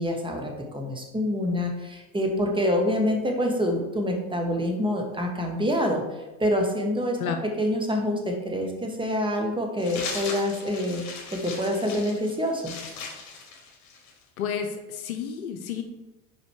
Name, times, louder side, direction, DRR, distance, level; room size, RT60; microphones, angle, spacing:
voice 1, 0.0-6.0 6.4-11.0 11.3-12.7, left 1 dB, 10° right, 2 dB, 1.3 m, -26 dB
sound 1, 9.8-14.2, left 4 dB, 40° left, 2.1 m, -38 dB
voice 2, 14.4-15.8, left 8 dB, 80° left, 5 dB, 0.7 m, -31 dB
5.1 x 5.0 x 4.7 m, 1.1 s
hypercardioid pair, 80°, 42 cm